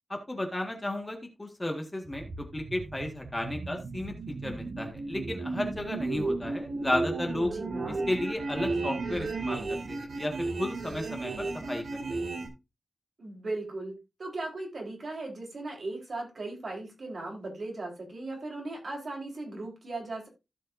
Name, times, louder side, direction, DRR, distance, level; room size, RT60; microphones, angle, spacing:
voice 1, 0.1-7.5 8.1-12.0, left 1 dB, 15° left, 3 dB, 1.8 m, -33 dB
sound 1, 2.1-12.5, right 3 dB, 70° right, 2.6 m, -34 dB
voice 2, 7.4-8.0 13.2-20.3, right 2 dB, 50° right, 0 dB, 4.3 m, -38 dB
16.0 x 5.5 x 2.7 m, 0.25 s
wide cardioid pair, 170°, 0 cm